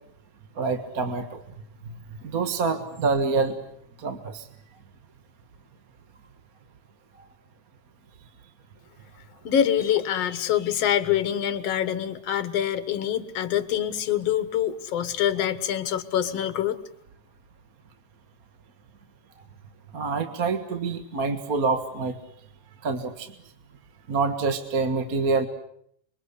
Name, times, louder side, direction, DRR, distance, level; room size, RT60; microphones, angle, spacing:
voice 1, 0.6-1.4 1.8-1.9 2.2-3.6 4.0-4.5 19.9-22.2 22.8-23.3 24.1-25.5, right 4 dB, 40° right, 8 dB, 1.6 m, -26 dB
voice 2, 9.4-16.8, left 10 dB, 60° left, 12 dB, 2.4 m, -25 dB
27.0 x 23.5 x 8.3 m, 0.69 s
omnidirectional pair, 3.4 m